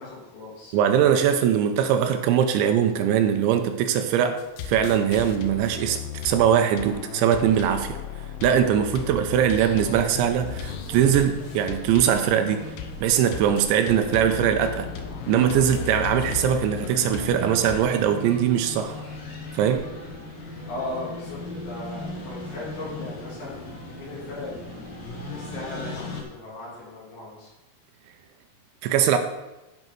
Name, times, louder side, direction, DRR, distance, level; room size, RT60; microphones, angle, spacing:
voice 1, 0.0-0.8 20.6-24.7 25.3-27.5, left 2 dB, 70° left, -6 dB, 5.6 m, -37 dB
voice 2, 0.7-8.0 8.4-12.7 13.0-14.9 15.3-19.0 19.5-19.9 28.8-29.2, right 9 dB, 85° right, 7 dB, 2.9 m, -21 dB
sound 1, 4.4-17.8, left 8 dB, 90° left, 3.4 m, -36 dB
sound 2, 10.1-26.2, left 2 dB, 55° left, 2.1 m, -38 dB
13.0 x 5.4 x 4.6 m, 1.0 s
omnidirectional pair, 5.5 m